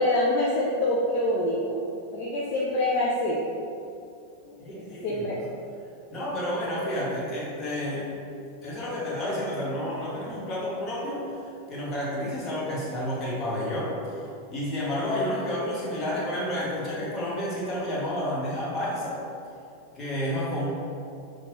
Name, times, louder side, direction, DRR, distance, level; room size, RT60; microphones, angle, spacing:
voice 1, 0.0-1.8 2.1-3.4 4.5-4.6 5.0-5.4, left 1 dB, 45° left, -4 dB, 0.5 m, -25 dB
voice 2, 4.6-5.3 6.1-8.1 8.6-11.2 11.7-14.2 14.5-19.2 19.9-20.7, left 1 dB, 25° left, -6 dB, 1.3 m, -30 dB
5.8 x 2.5 x 3.0 m, 2.6 s
figure-of-eight pair, 90°, 0 cm